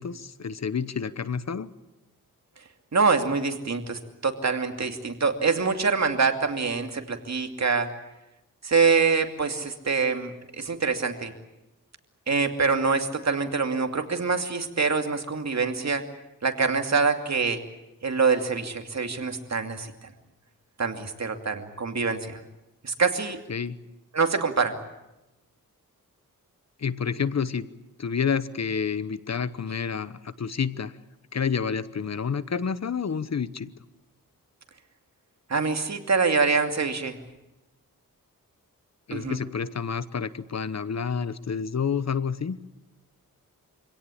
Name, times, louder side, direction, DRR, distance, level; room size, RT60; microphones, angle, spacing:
voice 1, 0.0-1.7 23.5-23.8 26.8-27.7 28.0-30.9 31.3-33.7 39.1-42.6, left 6 dB, 50° left, 15 dB, 1.0 m, -29 dB
voice 2, 2.9-7.9 8.6-10.3 10.6-11.3 12.3-16.0 16.4-17.6 18.0-19.9 20.8-22.4 22.8-23.4 24.1-24.7 35.5-37.2 39.1-39.4, right 4 dB, 50° right, 5 dB, 2.7 m, -25 dB
26.0 x 17.0 x 9.9 m, 0.98 s
cardioid pair, 75°, 35 cm